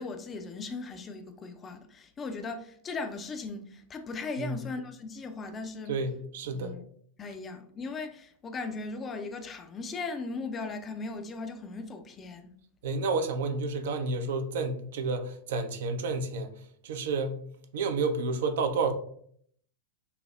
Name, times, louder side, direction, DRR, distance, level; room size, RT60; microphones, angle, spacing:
voice 1, 0.0-5.9 6.5-6.8 7.2-12.5, left 3 dB, 25° left, 0.4 m, -38 dB
voice 2, 4.4-4.7 5.9-6.8 12.8-16.5 16.8-17.4 17.7-18.9, right 3 dB, 55° right, 0.4 m, -30 dB
5.5 x 2.0 x 2.2 m
figure-of-eight pair, 90°, 0 cm